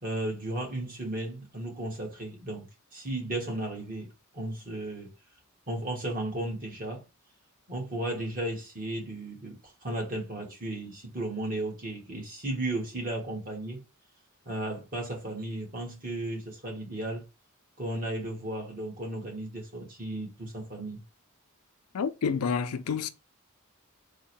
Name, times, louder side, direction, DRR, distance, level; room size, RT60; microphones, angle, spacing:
voice 1, 0.0-4.1 4.3-5.1 5.7-7.0 7.7-13.8 14.4-17.3 17.8-21.0, right 1 dB, 40° right, 1.5 m, -35 dB
voice 2, 21.9-23.1, left 6 dB, 85° left, 0.4 m, -29 dB
3.6 x 2.1 x 4.3 m
head